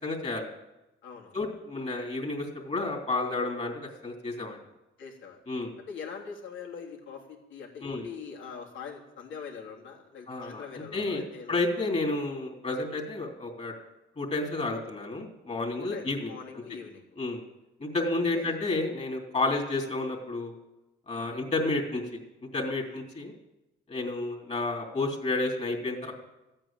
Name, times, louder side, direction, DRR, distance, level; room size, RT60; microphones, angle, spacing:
voice 1, 0.0-0.5 1.3-4.6 5.5-5.7 7.8-8.0 10.3-11.2 11.5-13.7 14.2-16.3 17.2-17.4 17.8-20.5 21.1-22.2 22.5-23.3 23.9-26.1, left 2 dB, 35° left, 1 dB, 3.2 m, -31 dB
voice 2, 1.0-1.4 5.0-5.4 5.9-11.5 15.8-17.2 18.2-18.6 21.1-21.3 22.8-23.0, left 6 dB, 75° left, -1 dB, 3.4 m, -43 dB
14.5 x 8.9 x 8.9 m, 0.99 s
cardioid pair, 90°, 20 cm